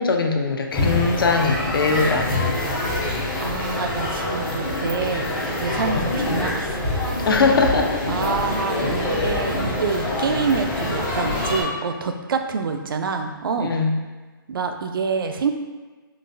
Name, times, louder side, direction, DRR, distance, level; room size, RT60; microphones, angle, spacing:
voice 1, 0.0-2.5 7.3-8.0 13.6-14.0, left 4 dB, 70° left, 3 dB, 0.5 m, -21 dB
sound 1, 0.7-11.6, left 1 dB, 15° left, 0.4 m, -25 dB
voice 2, 3.4-6.9 8.1-13.7 14.5-15.5, right 5 dB, 70° right, 6 dB, 0.4 m, -27 dB
3.8 x 2.3 x 2.5 m, 1.3 s
hypercardioid pair, 160°, 12 cm